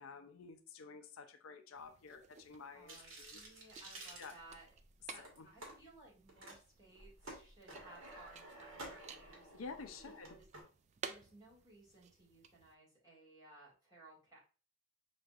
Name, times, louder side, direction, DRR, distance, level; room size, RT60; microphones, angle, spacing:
voice 1, 0.0-3.4 4.2-4.3 5.2-5.5 9.5-10.4, left 4 dB, 75° left, 7 dB, 0.5 m, -51 dB
sound 1, 1.7-12.7, right 6 dB, 35° right, 0.3 m, -55 dB
voice 2, 2.7-4.8 5.1-9.5 10.3-10.5 11.0-14.4, right 2 dB, 20° right, -7 dB, 2.2 m, -60 dB
sound 2, 2.9-4.8 5.2-5.7 6.3-6.6 6.9-10.6, right 1 dB, 70° right, 1.4 m, -52 dB
5.4 x 3.1 x 2.4 m, 0.36 s
head